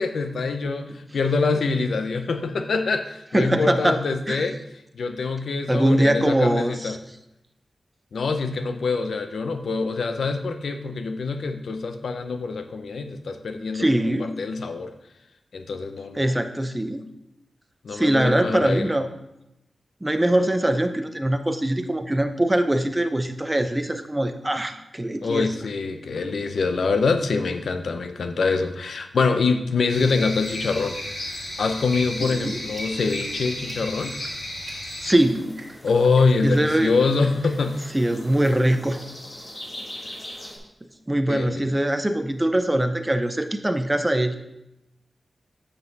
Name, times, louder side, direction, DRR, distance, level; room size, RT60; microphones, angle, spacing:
voice 1, 0.0-4.6 4.9-7.0 8.1-14.9 15.5-16.3 17.8-18.9 25.2-31.0 31.6-34.2 35.8-37.9 41.3-41.6, left 4 dB, 80° left, 8 dB, 0.6 m, -25 dB
voice 2, 3.3-4.5 5.7-7.0 13.7-14.3 16.1-17.0 17.9-19.1 20.0-25.5 32.2-32.6 35.0-35.5 36.4-36.9 37.9-39.0 41.1-44.3, right 1 dB, 15° right, 8 dB, 0.5 m, -22 dB
sound 1, 29.9-35.1, left 1 dB, 60° left, 2.4 m, -33 dB
sound 2, 32.6-37.7, right 3 dB, 50° right, 1.7 m, -47 dB
sound 3, 35.1-40.6, left 1 dB, 25° left, 1.4 m, -42 dB
8.2 x 5.5 x 4.0 m, 0.88 s
wide cardioid pair, 150°, 0 cm